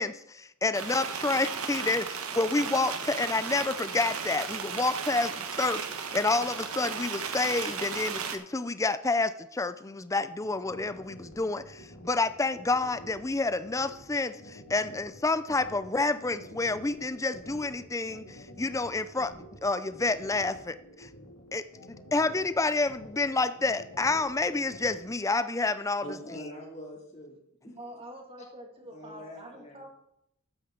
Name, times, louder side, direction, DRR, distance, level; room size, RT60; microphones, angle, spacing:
voice 1, 0.0-19.3 19.6-21.1 21.5-26.0, left 3 dB, 15° left, 13 dB, 0.5 m, -29 dB
sound 1, 0.7-8.4, right 6 dB, 90° right, 1.2 m, -35 dB
sound 2, 10.4-25.1, equal, 80° left, 2.5 m, -49 dB
voice 2, 26.0-27.4 27.6-27.7 28.9-29.8, left 1 dB, 30° left, -1 dB, 2.9 m, -43 dB
voice 3, 27.6-29.9, right 1 dB, 25° right, 1 dB, 2.3 m, -46 dB
13.5 x 9.2 x 3.9 m, 0.77 s
head